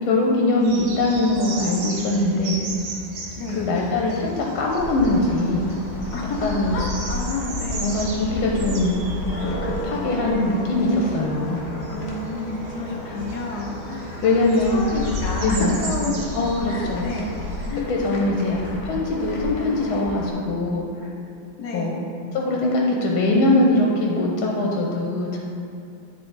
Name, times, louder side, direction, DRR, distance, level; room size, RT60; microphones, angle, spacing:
voice 1, 0.0-2.6 3.5-5.7 6.4-6.8 7.8-9.0 9.4-11.6 13.1-13.2 14.2-14.8 15.4-15.7 16.3-17.1 17.9-20.8 21.7-22.0 22.3-25.4, left 2 dB, 90° left, -1 dB, 1.5 m, -22 dB
sound 1, 0.6-17.8, right 2 dB, 85° right, 1.8 m, -37 dB
voice 2, 3.4-3.7 6.1-7.9 11.9-16.2 16.7-17.4 17.7-17.9 21.6-22.0, left 2 dB, 60° left, -1 dB, 1.2 m, -30 dB
sound 2, 4.7-20.3, left 1 dB, 45° left, 0.9 m, -32 dB
9.6 x 3.7 x 3.9 m, 2.5 s
omnidirectional pair, 2.2 m